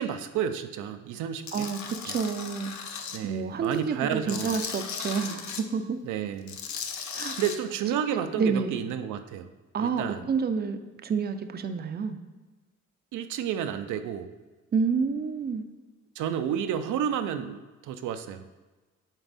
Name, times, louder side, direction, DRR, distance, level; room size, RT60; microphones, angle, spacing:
voice 1, 0.0-1.7 2.1-2.2 3.1-4.5 6.0-6.6 7.4-9.5 9.8-10.3 13.1-14.3 16.2-18.4, right 9 dB, 80° right, 8 dB, 0.5 m, -31 dB
Tools, 1.5-3.2 3.6-5.6 6.4-7.6, left 6 dB, 70° left, 0.7 m, -36 dB
voice 2, 1.5-2.8 3.2-6.0 7.1-7.4 8.3-8.8 9.7-12.2 14.7-15.6, right 5 dB, 35° right, 9 dB, 0.5 m, -29 dB
8.0 x 3.9 x 4.1 m, 1.2 s
cardioid pair, 90°, 30 cm